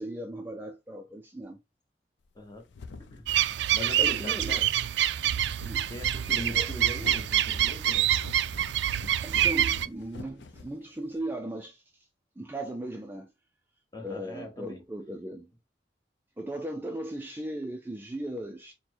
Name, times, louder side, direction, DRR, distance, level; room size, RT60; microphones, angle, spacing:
voice 1, 0.0-1.6 4.0-4.6 5.6-5.9 6.5-6.7 9.2-12.1 12.4-13.3 14.0-15.5 16.4-18.7, right 1 dB, 10° right, 0.4 m, -37 dB
sound 1, 2.3-11.2, left 3 dB, 90° left, 0.5 m, -47 dB
voice 2, 3.1-4.7 5.9-8.1 13.9-14.8, left 1 dB, 20° left, 1.1 m, -41 dB
sound 2, 3.3-9.9, right 11 dB, 80° right, 0.3 m, -26 dB
4.2 x 2.1 x 4.3 m
head